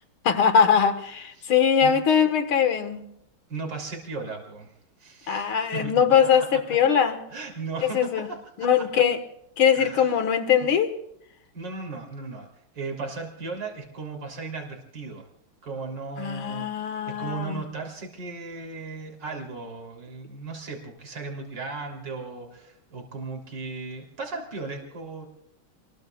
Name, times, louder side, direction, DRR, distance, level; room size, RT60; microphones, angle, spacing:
voice 1, 0.2-3.1 5.3-7.2 7.9-8.3 8.6-9.2 9.6-10.9 16.2-17.6, left 7 dB, 75° left, 8 dB, 2.4 m, -21 dB
voice 2, 3.5-6.0 6.4-6.8 7.3-8.9 9.7-10.2 11.5-12.5 12.7-15.3 15.6-25.3, right 4 dB, 55° right, 1 dB, 4.0 m, -36 dB
28.5 x 21.0 x 2.4 m, 0.73 s
omnidirectional pair, 2.4 m